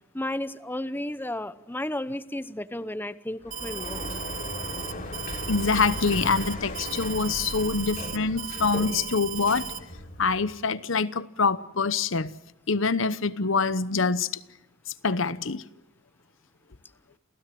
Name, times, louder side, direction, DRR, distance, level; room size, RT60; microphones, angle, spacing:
voice 1, 0.1-4.1, left 1 dB, 10° left, 0.8 m, -33 dB
Sliding door, 3.4-10.6, left 1 dB, 45° left, 3.6 m, -37 dB
Alarm, 3.5-9.8, right 7 dB, 40° right, 1.2 m, -36 dB
voice 2, 5.5-9.7 10.2-12.3 12.7-14.3 15.0-15.6, left 4 dB, 70° left, 0.9 m, -25 dB
29.0 x 16.0 x 7.7 m
head